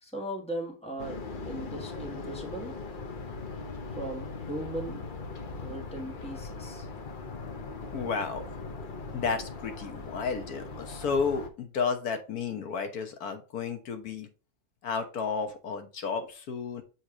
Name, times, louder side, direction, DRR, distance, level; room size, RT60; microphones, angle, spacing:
voice 1, 0.0-2.7 3.9-5.3 5.6-6.9, right 1 dB, 5° left, 0 dB, 1.4 m, -38 dB
sound 1, 1.0-11.5, left 3 dB, 45° left, 0.8 m, -40 dB
voice 2, 7.9-8.6 9.1-14.3 14.8-16.8, left 5 dB, 90° left, 7 dB, 1.5 m, -32 dB
7.0 x 3.2 x 4.8 m, 0.34 s
omnidirectional pair, 1.5 m